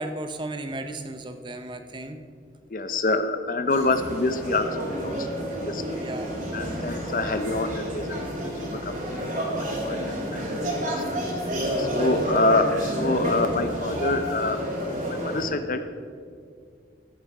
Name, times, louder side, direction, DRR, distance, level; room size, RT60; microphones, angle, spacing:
voice 1, 0.0-2.2 6.0-6.4 11.9-12.2, right 2 dB, 25° right, 8 dB, 0.6 m, -35 dB
voice 2, 2.7-6.0 6.5-8.2 8.4-10.4 10.8-11.2 11.8-14.6 15.1-15.9, left 2 dB, 50° left, 10 dB, 0.6 m, -27 dB
sound 1, 3.7-15.4, equal, 45° right, 2.4 m, -30 dB
14.5 x 6.4 x 4.8 m, 2.2 s
head